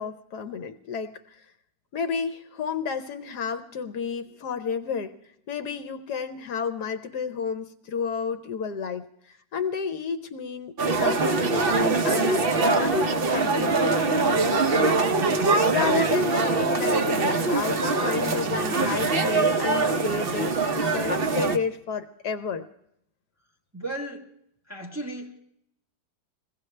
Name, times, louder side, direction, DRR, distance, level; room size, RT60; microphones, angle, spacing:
voice 1, 0.0-1.4 1.9-5.1 5.5-15.0 15.7-22.7, left 6 dB, 65° left, 9 dB, 1.3 m, -32 dB
sound 1, 10.8-21.6, right 3 dB, 50° right, 0.7 m, -23 dB
voice 2, 23.7-24.3 24.7-25.4, right 1 dB, 10° right, -1 dB, 1.3 m, -35 dB
21.5 x 16.5 x 3.2 m, 0.75 s
omnidirectional pair, 1.9 m